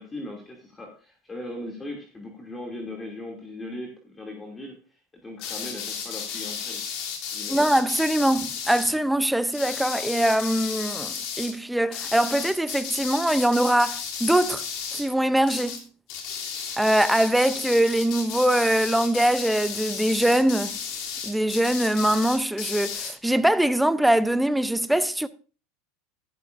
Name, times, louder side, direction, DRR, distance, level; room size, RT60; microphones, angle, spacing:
voice 1, 0.0-6.8 7.3-7.6, left 1 dB, 20° left, 2.8 m, -38 dB
sound 1, 5.4-8.9 9.5-11.5 11.9-15.1 15.4-15.8 16.1-23.1, left 7 dB, 60° left, 3.2 m, -34 dB
voice 2, 7.5-14.6 14.9-15.8 16.8-20.8 21.2-25.3, right 1 dB, 5° right, 0.7 m, -22 dB
14.0 x 11.5 x 2.7 m
supercardioid pair, 105°, 0 cm